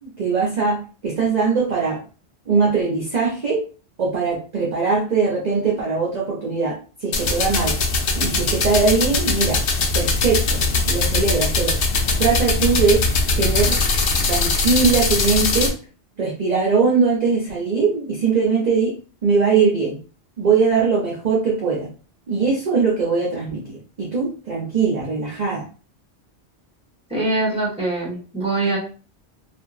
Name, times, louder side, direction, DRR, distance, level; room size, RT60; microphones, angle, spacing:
voice 1, 0.0-2.0 2.5-3.6 4.0-7.7 8.1-9.6 9.9-11.8 12.2-13.0 13.4-13.8 14.2-15.7 16.2-19.0 19.2-20.0 20.4-21.9 22.3-25.6, right 4 dB, 45° right, -3 dB, 0.7 m, -21 dB
sound 1, 7.1-15.7, left 3 dB, 90° left, 0.9 m, -21 dB
voice 2, 27.1-28.8, right 2 dB, 5° right, -5 dB, 1.3 m, -23 dB
2.8 x 2.5 x 2.4 m, 0.37 s
omnidirectional pair, 1.1 m